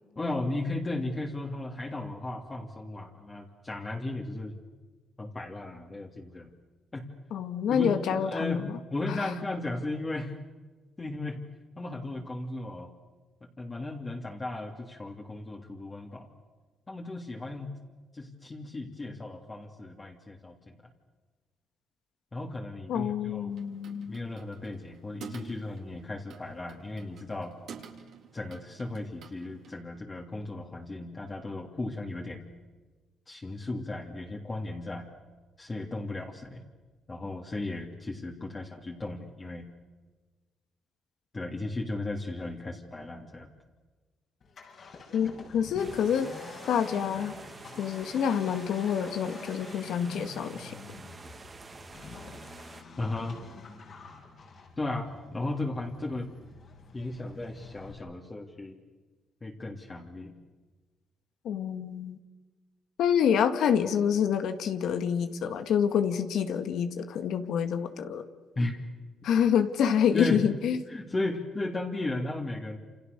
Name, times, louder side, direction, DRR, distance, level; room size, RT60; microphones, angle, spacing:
voice 1, 0.1-4.5 5.2-6.5 6.9-7.0 7.7-8.6 8.9-10.4 11.0-11.4 11.8-12.9 13.4-16.3 16.9-17.7 18.1-20.8 22.3-23.6 24.1-27.5 28.3-32.4 33.3-35.1 35.6-36.6 37.1-39.7 41.3-43.5 53.0-53.4 54.8-56.3 56.9-58.8 59.4-60.3 68.5-68.8 69.9-70.4 70.9-72.8, left 2 dB, 25° left, -1 dB, 3.2 m, -35 dB
voice 2, 7.3-8.7 9.2-9.3 22.9-24.2 45.1-46.3 46.7-47.3 47.8-50.8 61.4-62.2 63.0-68.3 69.2-70.8, left 8 dB, 75° left, 8 dB, 2.1 m, -27 dB
sound 1, 23.5-29.8, right 7 dB, 70° right, 3.6 m, -49 dB
Accelerating revving vroom, 44.4-57.9, left 4 dB, 55° left, 6.6 m, -47 dB
sound 2, 45.8-52.8, right 4 dB, 35° right, 2.5 m, -48 dB
28.5 x 28.5 x 6.9 m, 1.3 s
cardioid pair, 90°, 0 cm